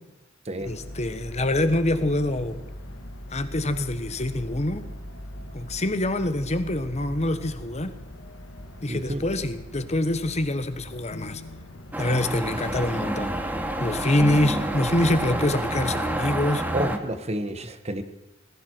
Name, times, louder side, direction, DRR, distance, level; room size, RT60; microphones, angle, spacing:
sound 1, 0.6-15.3, left 1 dB, 80° left, 2.0 m, -41 dB
voice 1, 0.6-2.6 3.3-4.8 5.5-7.9 8.8-11.4 12.0-13.3 13.8-16.6, left 1 dB, 35° left, 10 dB, 1.2 m, -25 dB
voice 2, 8.9-9.2 16.7-18.0, right 1 dB, 35° right, 10 dB, 1.3 m, -29 dB
sound 2, 11.9-17.0, right 1 dB, 10° right, 1.2 m, -28 dB
19.0 x 16.0 x 4.6 m, 0.99 s
head